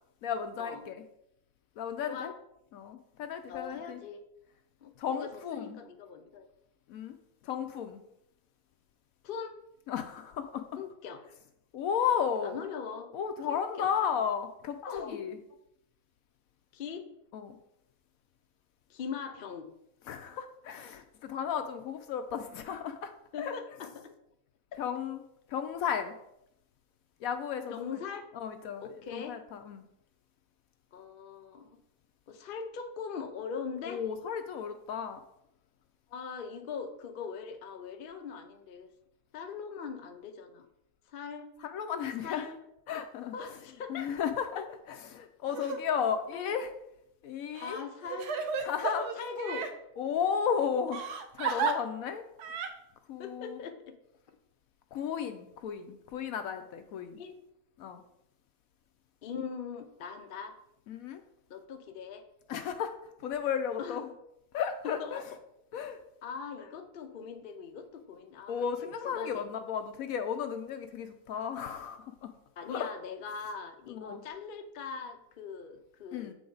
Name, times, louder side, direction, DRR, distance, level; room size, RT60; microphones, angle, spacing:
voice 1, 0.2-1.0 1.8-2.3 2.7-4.0 5.0-5.8 6.9-7.2 7.4-8.0 9.9-10.7 11.7-12.6 13.1-15.4 17.3-17.6 20.1-23.1 23.4-23.6 24.8-25.2 25.5-26.1 27.2-27.9 28.3-29.8 33.9-35.2 41.6-42.5 42.9-43.3 43.9-46.7 47.2-47.8 48.6-49.2 50.0-51.0 51.3-52.2 53.1-53.6 54.9-57.2 57.8-58.0 60.9-61.2 62.5-62.9 63.2-64.1 64.5-65.2 65.7-66.0 68.5-72.3 72.7-72.9 73.9-74.2 76.1-76.3, left 7 dB, 70° left, 8 dB, 0.9 m, -34 dB
voice 2, 3.5-4.2 4.8-6.5 9.2-9.5 10.7-11.2 12.4-13.9 14.8-15.2 16.7-17.0 18.9-19.7 23.3-24.1 27.7-28.3 28.8-29.4 30.9-31.8 32.3-34.0 36.1-38.9 39.3-40.7 41.1-41.5 42.2-42.6 43.3-44.1 44.6-44.7 46.3-46.6 47.6-48.5 49.1-49.7 51.5-51.7 53.2-53.9 57.2-57.3 59.2-60.6 61.5-62.2 63.8-64.1 64.8-65.2 66.2-69.4 72.6-76.3, left 6 dB, 55° left, 6 dB, 0.6 m, -41 dB
Crying sobbing, 45.5-45.8 46.4-46.5 47.6-49.7 50.9-51.7 52.4-52.7, right 6 dB, 80° right, 1.3 m, -33 dB
7.6 x 4.9 x 3.9 m, 0.80 s
omnidirectional pair, 1.7 m